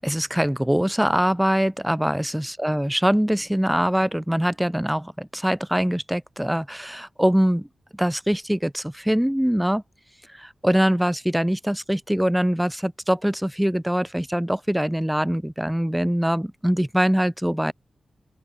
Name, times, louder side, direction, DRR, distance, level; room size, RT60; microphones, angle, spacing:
voice 1, 0.0-7.7 7.9-9.8 10.3-17.7, equal, 5° right, 4.5 m, -23 dB
open air
wide cardioid pair, 145°, 0 cm